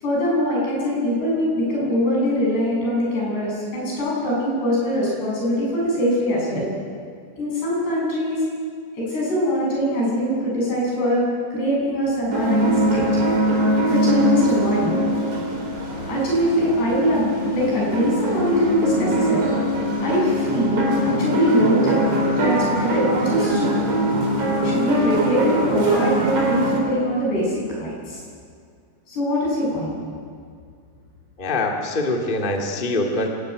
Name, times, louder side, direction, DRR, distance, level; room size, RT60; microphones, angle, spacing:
voice 1, 0.0-6.7 7.4-8.4 8.9-13.1 13.9-15.0 16.1-19.5 20.0-20.9 21.2-22.0 22.4-23.7 24.6-28.2 29.1-29.9, equal, 80° left, -4 dB, 9.9 m, -22 dB
sound 1, 12.3-26.8, right 1 dB, 35° right, 4.4 m, -22 dB
voice 2, 31.4-33.3, left 2 dB, 20° left, 1 dB, 1.5 m, -24 dB
26.0 x 15.0 x 9.5 m, 2.2 s
omnidirectional pair, 4.7 m